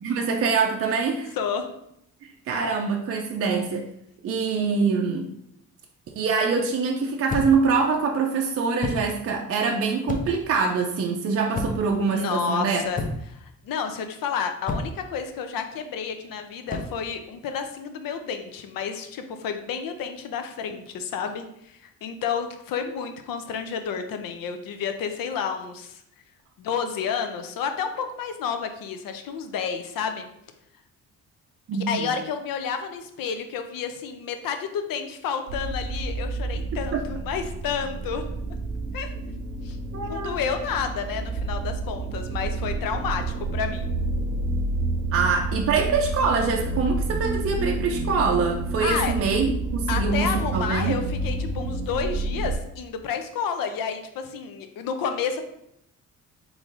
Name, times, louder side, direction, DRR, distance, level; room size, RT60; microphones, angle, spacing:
voice 1, 0.0-1.3 2.2-3.9 4.2-5.3 6.2-12.8 31.7-32.1 36.9-37.0 39.9-40.4 45.1-51.0, right 5 dB, 40° right, 1 dB, 0.5 m, -24 dB
voice 2, 1.4-1.7 12.1-13.0 13.3-26.0 26.6-30.2 31.7-38.2 38.9-39.1 39.6-39.8 40.1-43.9 48.8-49.1 49.9-55.4, left 6 dB, 70° left, 7 dB, 0.6 m, -30 dB
sound 1, 7.3-7.7 8.8-9.1 10.1-10.5 11.5-12.0 12.9-13.4 14.7-15.0 16.7-17.0, left 2 dB, 25° left, 0.5 m, -30 dB
sound 2, 35.5-52.6, right 2 dB, 80° right, 0.7 m, -29 dB
3.7 x 3.1 x 2.5 m, 0.78 s
cardioid pair, 75°, 35 cm